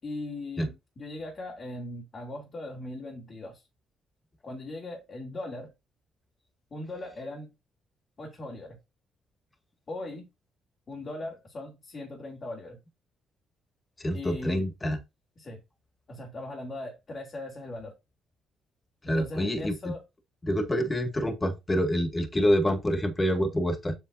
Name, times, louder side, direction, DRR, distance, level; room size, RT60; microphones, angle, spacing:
voice 1, 0.0-3.7 4.4-5.7 6.7-7.5 8.2-8.8 9.9-10.3 10.9-12.8 14.1-14.7 15.4-15.6 16.1-17.9 19.1-20.0, left 2 dB, 40° left, 3.2 m, -39 dB
voice 2, 14.0-15.0 19.0-19.9 20.4-24.0, equal, 20° left, 1.8 m, -27 dB
7.9 x 6.8 x 2.6 m
cardioid pair, 90°, 0 cm